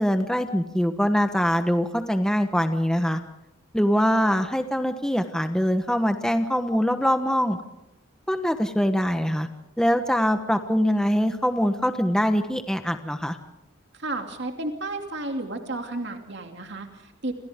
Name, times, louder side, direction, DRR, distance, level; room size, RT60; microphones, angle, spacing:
voice 1, 0.0-3.2 3.7-7.6 8.3-9.5 9.8-13.4, equal, 5° left, 7 dB, 1.2 m, -23 dB
voice 2, 13.9-17.3, right 2 dB, 55° right, 4 dB, 2.8 m, -32 dB
29.0 x 27.0 x 3.7 m, 0.92 s
head